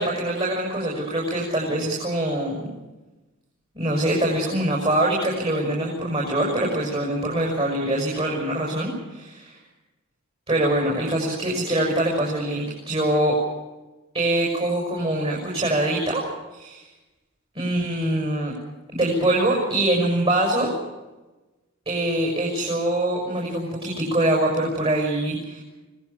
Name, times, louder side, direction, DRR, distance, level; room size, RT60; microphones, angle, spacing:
voice 1, 0.0-2.7 3.7-9.6 10.5-13.3 14.1-16.2 16.5-16.8 17.5-18.5 18.9-20.7 21.8-25.6, right 1 dB, 30° right, -3 dB, 6.6 m, -24 dB
25.0 x 19.0 x 7.1 m, 1.1 s
head